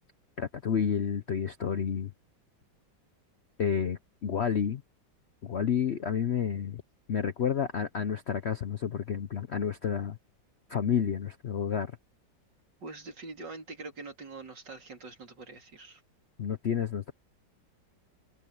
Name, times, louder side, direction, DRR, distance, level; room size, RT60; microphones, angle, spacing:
voice 1, 0.4-2.1 3.6-4.8 5.4-6.8 7.1-10.2 10.7-11.9 16.4-17.1, left 7 dB, 55° left, 0.7 m, -30 dB
voice 2, 12.8-16.0, right 3 dB, 75° right, 4.1 m, -44 dB
omnidirectional pair, 2.0 m